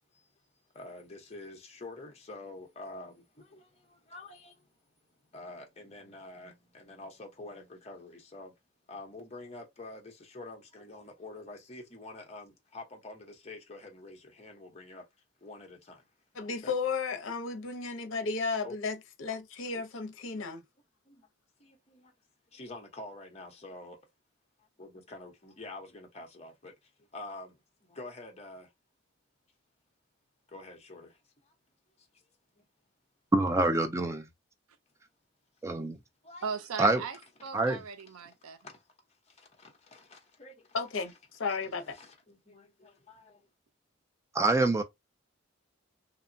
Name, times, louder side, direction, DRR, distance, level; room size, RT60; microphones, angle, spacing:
voice 1, 0.7-4.7 5.3-8.5 8.9-15.1 15.4-16.0 16.4-16.7 18.6-18.7 21.1-21.3 21.6-22.1 22.5-24.0 24.8-27.6 27.9-28.7 30.5-31.2 31.5-31.6 32.0-32.1 36.2-36.6 38.6-38.8 39.3-40.8 41.9-43.5, left 2 dB, 30° left, 0.8 m, -47 dB
voice 2, 16.3-20.6 40.7-41.1 41.4-42.0, left 4 dB, 70° left, 0.6 m, -33 dB
voice 3, 33.3-34.3 35.6-36.0 36.8-37.0 37.5-37.8 44.3-44.8, right 2 dB, 15° right, 0.3 m, -26 dB
voice 4, 36.4-38.6, right 5 dB, 90° right, 0.5 m, -38 dB
2.9 x 2.1 x 2.6 m
head